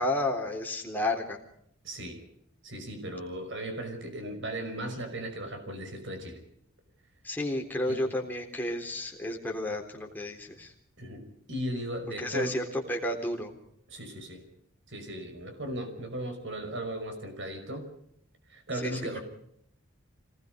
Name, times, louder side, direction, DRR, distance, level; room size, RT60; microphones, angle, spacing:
voice 1, 0.0-1.4 7.2-10.7 12.2-13.5 18.8-19.0, left 1 dB, 10° left, 1 dB, 3.7 m, -31 dB
voice 2, 1.8-2.2 2.6-6.4 7.8-8.0 11.0-12.6 13.9-14.5 14.9-17.9 18.5-19.2, right 1 dB, 60° right, 6 dB, 5.6 m, -37 dB
26.5 x 19.5 x 5.3 m, 0.70 s
head